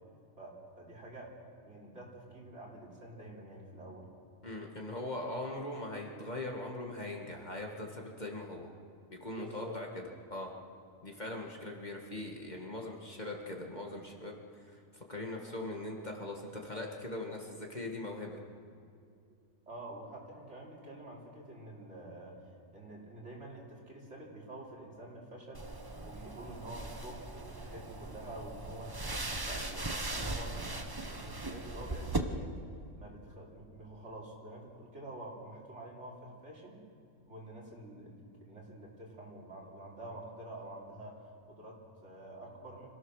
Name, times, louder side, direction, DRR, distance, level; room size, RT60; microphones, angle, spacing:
voice 1, 0.4-1.3 1.6-4.1 9.3-9.8 19.7-22.4 22.7-25.7 26.0-28.9 29.3-32.6 32.9-36.8 37.3-41.2 41.4-42.9, right 1 dB, 55° right, -3 dB, 4.3 m, -48 dB
voice 2, 4.4-8.7 9.1-10.0 10.3-10.5 11.0-18.4, left 2 dB, 35° left, 0 dB, 2.0 m, -41 dB
sound 1, 25.5-32.2, right 2 dB, 20° right, 1.0 m, -39 dB
26.5 x 16.5 x 6.5 m, 2.5 s
omnidirectional pair, 1.4 m